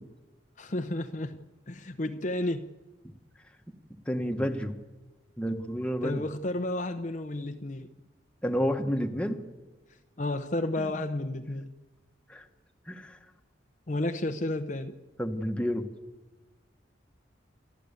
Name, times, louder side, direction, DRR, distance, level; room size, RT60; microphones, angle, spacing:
voice 1, 0.6-2.7 6.0-7.9 10.2-11.7 13.9-15.0, left 1 dB, 40° left, 0.8 m, -32 dB
voice 2, 4.1-4.7 5.4-6.2 8.4-9.4 10.8-10.9 12.3-12.4 12.9-13.2 15.2-15.8, equal, 5° left, 1.4 m, -30 dB
28.0 x 13.0 x 8.3 m
head